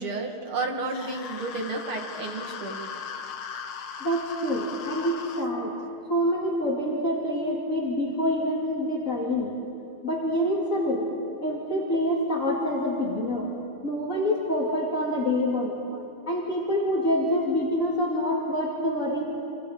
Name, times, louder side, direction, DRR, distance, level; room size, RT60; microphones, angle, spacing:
voice 1, 0.0-2.8, right 3 dB, 80° right, 1 dB, 3.3 m, -31 dB
sound 1, 0.9-5.5, left 7 dB, 85° left, 2.0 m, -38 dB
voice 2, 4.0-5.8 6.1-9.6 10.0-11.1 11.4-13.5 13.8-15.7 16.3-19.3, equal, 40° left, -4 dB, 2.9 m, -26 dB
27.5 x 27.0 x 5.1 m, 2.6 s
omnidirectional pair, 2.3 m